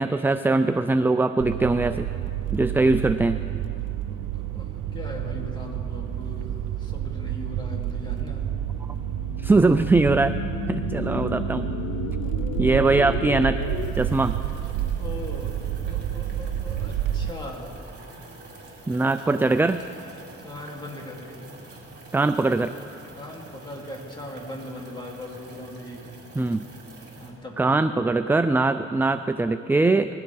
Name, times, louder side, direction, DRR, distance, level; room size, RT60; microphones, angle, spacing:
voice 1, 0.0-2.1 2.5-3.4 9.4-10.4 10.7-11.7 12.6-13.7 14.0-14.4 18.9-19.8 22.1-22.7 26.4-26.7 27.6-30.2, right 3 dB, 5° right, 10 dB, 0.3 m, -21 dB
sound 1, 1.4-17.3, right 11 dB, 85° right, 0.5 m, -29 dB
voice 2, 4.1-8.6 12.2-12.6 15.0-17.8 20.4-21.5 23.1-26.2 27.1-27.7, left 1 dB, 15° left, -1 dB, 2.8 m, -39 dB
sound 2, 8.4-13.9, left 8 dB, 75° left, 0.7 m, -34 dB
sound 3, 13.5-27.3, right 3 dB, 35° right, 4.2 m, -46 dB
21.0 x 16.0 x 3.5 m, 2.8 s
cardioid pair, 90°, 30 cm